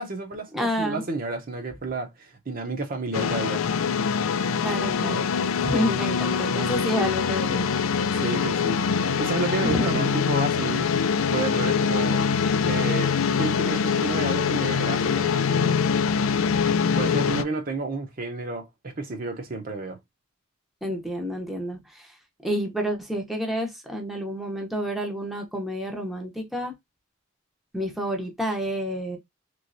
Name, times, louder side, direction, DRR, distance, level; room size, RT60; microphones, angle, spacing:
voice 1, 0.0-3.6 8.2-10.9 11.3-12.3 12.7-15.8 17.0-20.0, right 3 dB, 45° right, 0.7 m, -31 dB
voice 2, 0.5-1.0 4.6-5.3 5.6-7.7 9.6-10.2 20.8-22.1 22.4-26.7 27.7-29.2, equal, ahead, 0.7 m, -29 dB
sound 1, 3.1-17.4, left 6 dB, 90° left, 0.4 m, -24 dB
3.1 x 3.0 x 2.6 m
head